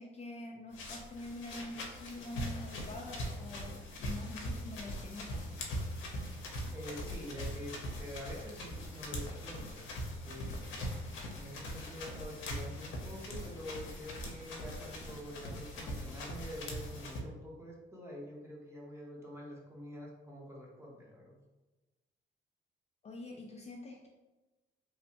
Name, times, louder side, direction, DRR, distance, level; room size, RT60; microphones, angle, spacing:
voice 1, 0.0-5.6 23.0-24.1, left 2 dB, 35° left, -1 dB, 0.4 m, -45 dB
sound 1, 0.7-17.2, equal, 75° left, 0.6 m, -41 dB
voice 2, 6.7-10.0 10.2-10.5 11.3-21.4, equal, 15° right, -3 dB, 0.8 m, -46 dB
3.0 x 2.1 x 2.8 m, 1.1 s
cardioid pair, 90°, 20 cm